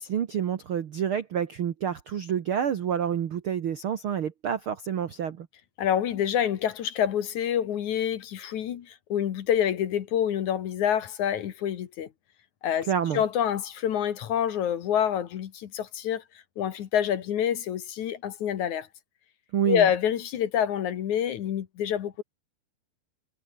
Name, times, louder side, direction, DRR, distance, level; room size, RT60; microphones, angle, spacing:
voice 1, 0.0-5.5 12.8-13.2 19.5-19.9, right 8 dB, 75° right, 1.2 m, -28 dB
voice 2, 5.8-12.1 12.6-12.9 13.1-16.2 16.6-18.9 19.7-22.2, left 9 dB, 60° left, 2.5 m, -27 dB
omnidirectional pair, 4.3 m